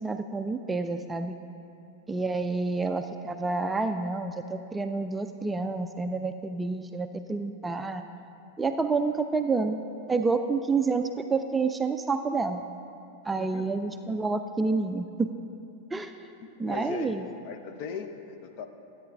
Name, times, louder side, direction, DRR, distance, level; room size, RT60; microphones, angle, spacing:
voice 1, 0.0-1.4 2.1-8.0 8.6-9.8 10.1-12.6 13.2-15.3 15.9-16.1 16.6-17.3, right 4 dB, 10° right, 7 dB, 0.4 m, -29 dB
voice 2, 13.4-13.7 16.4-18.7, left 6 dB, 45° left, 7 dB, 0.7 m, -39 dB
13.0 x 8.7 x 3.4 m, 2.7 s
figure-of-eight pair, 90°, 0 cm